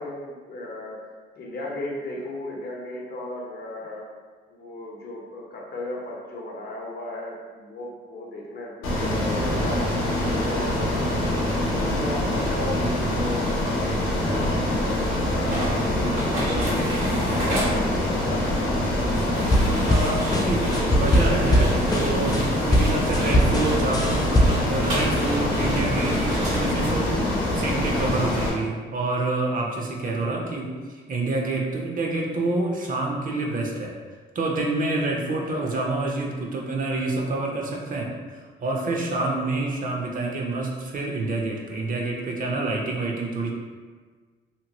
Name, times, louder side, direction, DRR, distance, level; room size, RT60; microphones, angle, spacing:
voice 1, 0.0-4.1 4.5-11.4 11.7-19.1 30.0-30.4 32.6-32.7 35.3-35.6 39.4-39.7, left 1 dB, 50° left, -2 dB, 0.7 m, -36 dB
Ocean, 8.8-28.5, left 1 dB, 85° left, 0.7 m, -24 dB
sound 1, 15.4-26.9, right 1 dB, 90° right, 1.2 m, -33 dB
sound 2, 19.4-22.4 22.7-24.7, equal, 20° left, 0.3 m, -21 dB
voice 2, 19.9-34.0 34.3-38.1 38.6-43.5, right 2 dB, 45° right, 0 dB, 0.5 m, -27 dB
2.9 x 2.1 x 2.8 m, 1.5 s
cardioid pair, 90°, 20 cm